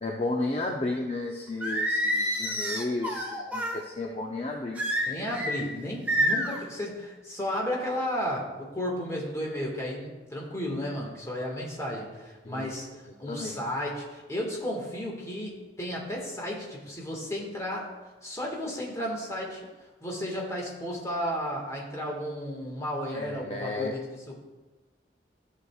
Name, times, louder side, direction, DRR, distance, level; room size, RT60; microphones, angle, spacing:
voice 1, 0.0-4.8 12.5-12.7 13.3-13.6 23.1-23.9, left 2 dB, 35° left, 1 dB, 0.6 m, -33 dB
Singing, 1.6-3.8 4.8-5.6 6.1-6.6, equal, 10° right, 1.0 m, -28 dB
voice 2, 5.0-17.9 18.2-19.6 20.0-24.4, equal, 20° left, -2 dB, 1.7 m, -33 dB
13.5 x 6.4 x 2.4 m, 1.2 s
head